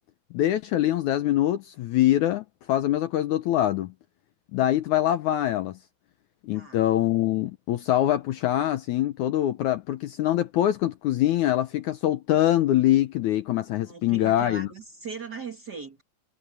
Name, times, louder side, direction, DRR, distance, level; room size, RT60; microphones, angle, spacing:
voice 1, 0.3-3.9 4.5-5.8 6.4-14.7, left 13 dB, 70° left, 2.0 m, -24 dB
voice 2, 13.8-16.0, right 4 dB, 35° right, 2.0 m, -39 dB
omnidirectional pair, 4.0 m